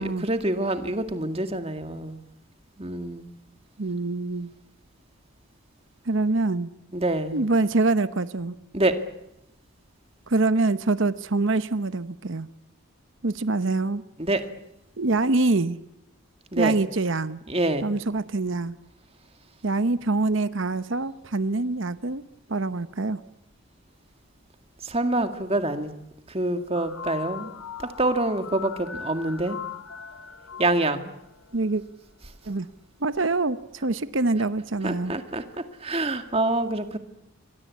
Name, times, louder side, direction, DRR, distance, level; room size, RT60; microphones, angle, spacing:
voice 1, 0.0-2.2 2.8-3.3 6.9-7.4 8.7-9.0 14.2-14.4 16.5-16.7 17.5-17.9 24.8-25.9 26.3-27.5 27.8-29.6 30.6-31.1 34.8-35.4 35.8-37.0, right 2 dB, 25° right, 2.0 m, -26 dB
voice 2, 3.8-4.5 6.0-6.7 7.3-8.5 10.3-12.5 13.2-14.0 15.0-15.8 16.6-17.4 17.8-18.8 19.6-22.2 22.5-23.2 31.5-31.8 32.5-32.7 33.0-35.1, right 3 dB, 60° right, 0.9 m, -25 dB
sound 1, 26.7-31.8, left 8 dB, 90° left, 3.0 m, -40 dB
27.0 x 23.0 x 8.5 m
head